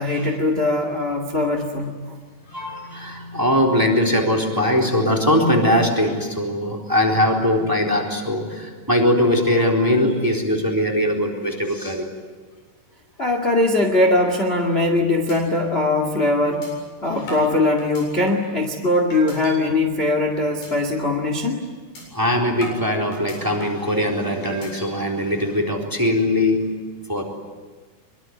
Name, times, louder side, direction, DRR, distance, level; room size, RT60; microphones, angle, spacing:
voice 1, 0.0-2.2 13.2-16.7 17.0-21.7, left 2 dB, 20° left, 3 dB, 1.7 m, -21 dB
voice 2, 2.4-12.1 17.1-17.2 22.1-26.6 27.1-27.2, left 1 dB, 5° right, 0 dB, 3.5 m, -21 dB
sound 1, 15.3-15.4 15.8-15.9 16.6-16.7 17.3-18.5 19.1-19.5 20.0-20.2 20.6-20.7 21.1-21.3 21.9-22.0 22.6-23.9 24.4-24.9, right 1 dB, 85° left, 9.6 m, -38 dB
24.5 x 24.0 x 9.5 m, 1.4 s
omnidirectional pair, 4.1 m